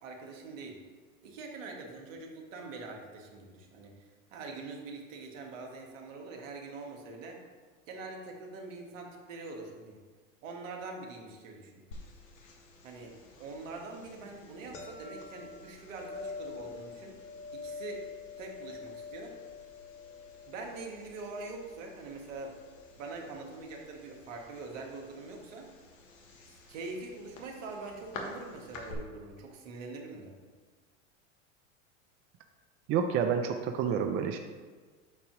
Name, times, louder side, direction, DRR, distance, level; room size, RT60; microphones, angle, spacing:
voice 1, 0.0-0.8 1.2-7.4 7.9-10.0 10.4-11.8 12.8-17.2 17.5-18.0 18.4-19.3 20.5-22.5 23.0-25.7 26.7-30.3, right 3 dB, 75° right, 1 dB, 1.6 m, -44 dB
sound 1, 11.9-28.9, left 4 dB, 85° left, 1.5 m, -47 dB
voice 2, 32.9-34.4, right 7 dB, 35° right, 5 dB, 0.5 m, -29 dB
8.4 x 2.9 x 6.0 m, 1.4 s
hypercardioid pair, 105°, 39 cm